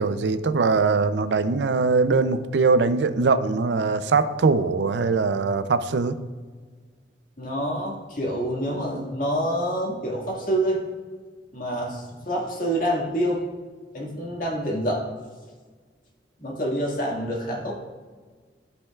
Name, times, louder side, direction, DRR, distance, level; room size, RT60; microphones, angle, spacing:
voice 1, 0.0-6.1, right 4 dB, 80° right, 12 dB, 0.4 m, -21 dB
voice 2, 7.4-10.8 11.5-13.4 13.9-15.1 16.4-17.7, equal, 50° left, -2 dB, 1.8 m, -27 dB
13.0 x 5.4 x 2.3 m, 1.5 s
head